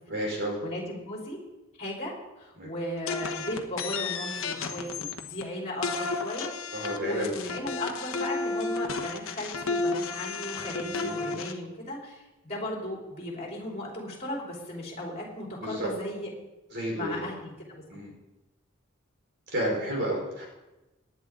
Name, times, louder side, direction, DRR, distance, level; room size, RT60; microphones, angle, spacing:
voice 1, 0.1-0.6 2.6-2.7 6.7-7.3 10.8-11.4 15.6-15.9 16.7-17.3 17.9-18.1 19.5-20.5, equal, 55° right, -1 dB, 4.6 m, -31 dB
voice 2, 0.6-1.4 1.8-6.5 7.0-16.3 16.9-17.8, left 1 dB, 30° left, -3 dB, 4.2 m, -36 dB
sound 1, 3.1-5.4 5.8-11.5, left 4 dB, 80° left, 1.1 m, -32 dB
18.5 x 10.5 x 3.8 m, 1.0 s
head